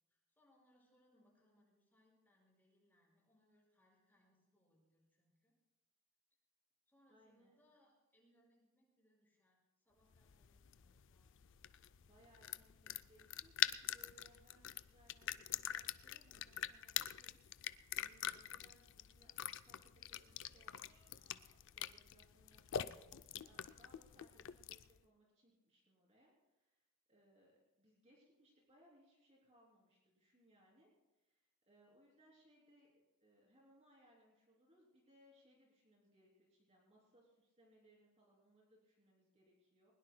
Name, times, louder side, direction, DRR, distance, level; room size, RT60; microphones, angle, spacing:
voice 1, 0.1-5.5 6.9-11.5, equal, 10° left, -3 dB, 5.6 m, -75 dB
voice 2, 7.1-7.6 12.0-21.4 21.7-23.0 23.4-39.9, equal, 30° right, -3 dB, 3.1 m, -70 dB
sound 1, 10.1-25.0, left 11 dB, 60° left, 0.4 m, -45 dB
sound 2, 20.1-21.6 23.4-24.1, right 2 dB, 80° right, 4.5 m, -74 dB
21.0 x 20.5 x 2.2 m, 1.0 s
head